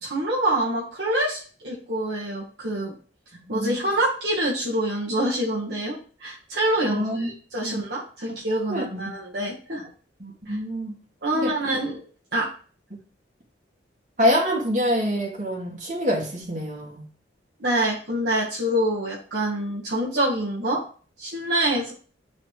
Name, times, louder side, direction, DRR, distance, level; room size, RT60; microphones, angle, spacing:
voice 1, 0.0-2.9 3.5-9.8 10.5-10.6 11.2-12.1 12.3-12.5 17.6-20.8 21.2-21.9, right 1 dB, 60° right, 1.7 m, -26 dB
voice 2, 3.5-3.8 6.9-7.3 7.6-7.8 8.7-9.1 10.2-11.0 11.3-11.5 14.2-17.0, equal, 40° right, 2.5 m, -25 dB
10.5 x 4.3 x 3.3 m
head